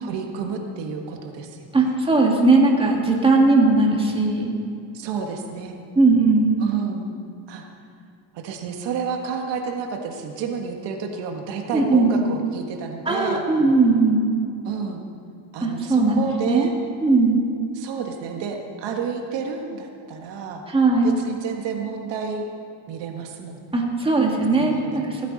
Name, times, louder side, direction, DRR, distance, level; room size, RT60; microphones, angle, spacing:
voice 1, 0.0-2.0 4.9-5.8 6.6-7.1 7.5-7.7 8.3-13.4 14.6-15.0 15.5-16.7 17.7-20.6 21.0-22.4 22.9-23.8 24.6-25.1, right 6 dB, 70° right, 3 dB, 1.7 m, -30 dB
voice 2, 1.7-4.5 6.0-6.6 11.7-12.1 13.1-14.2 15.6-16.7 17.0-17.4 20.7-21.2 23.7-25.3, right 3 dB, 10° right, -1 dB, 2.1 m, -18 dB
17.0 x 15.0 x 4.1 m, 2.4 s
cardioid pair, 130°, 45 cm